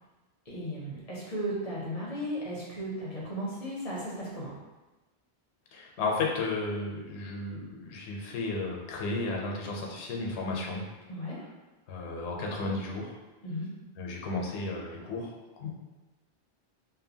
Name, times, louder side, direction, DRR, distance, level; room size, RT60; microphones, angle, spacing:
voice 1, 0.5-4.5 11.1-11.4 13.4-13.7, equal, 45° left, -6 dB, 0.6 m, -35 dB
voice 2, 5.7-10.8 11.9-13.2 14.0-15.7, left 3 dB, 85° left, -1 dB, 0.9 m, -33 dB
2.7 x 2.2 x 2.6 m, 1.2 s
omnidirectional pair, 1.1 m